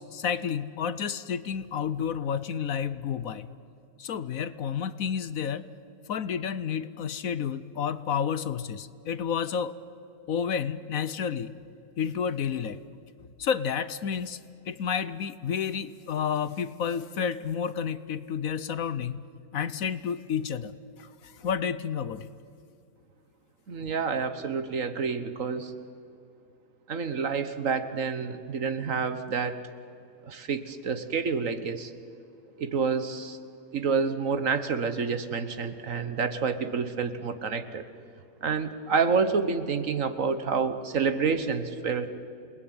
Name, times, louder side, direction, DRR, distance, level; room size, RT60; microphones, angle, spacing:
voice 1, 0.0-3.5 4.0-5.6 6.1-9.7 10.3-11.5 12.0-12.8 13.4-14.4 14.7-19.2 19.5-22.3, left 7 dB, 65° left, 15 dB, 1.2 m, -30 dB
voice 2, 23.7-25.7 26.9-29.6 30.2-31.9 32.6-33.4 33.7-37.8 38.4-42.1, right 5 dB, 55° right, 11 dB, 1.6 m, -28 dB
29.0 x 20.0 x 9.5 m, 2.5 s
omnidirectional pair, 1.7 m